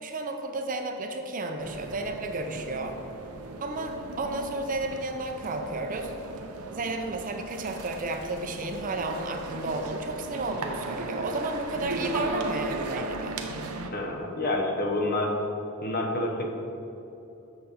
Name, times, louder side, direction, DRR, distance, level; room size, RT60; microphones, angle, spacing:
voice 1, 0.0-3.0 3.6-6.1 6.7-13.4, right 2 dB, 35° right, 5 dB, 0.6 m, -32 dB
sound 1, 1.6-13.9, right 2 dB, 80° right, 0.7 m, -37 dB
voice 2, 13.9-15.3 15.8-16.5, left 2 dB, 45° left, 1 dB, 0.9 m, -28 dB
7.8 x 6.5 x 4.2 m, 3.0 s
head